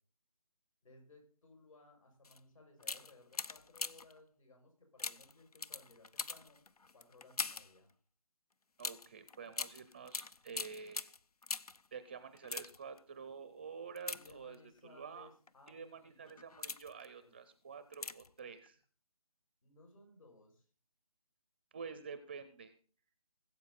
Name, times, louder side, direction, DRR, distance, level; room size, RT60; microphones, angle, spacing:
voice 1, 0.8-6.6 6.9-7.9 14.1-16.4 17.2-17.3 17.7-17.8 19.6-20.7, left 2 dB, 65° left, 2 dB, 6.4 m, -61 dB
sound 1, 2.2-2.4 2.8-4.2 5.0-7.8 8.8-11.9 12.3-13.0 14.0-14.8 15.5-15.7 16.3-17.1 17.9-18.4 18.7-18.8, left 4 dB, 85° left, 0.7 m, -43 dB
voice 2, 8.8-11.1 11.9-15.3 15.7-18.8 21.7-22.7, right 6 dB, 20° right, 12 dB, 0.5 m, -49 dB
19.5 x 8.3 x 4.1 m, 0.43 s
figure-of-eight pair, 155°, 19 cm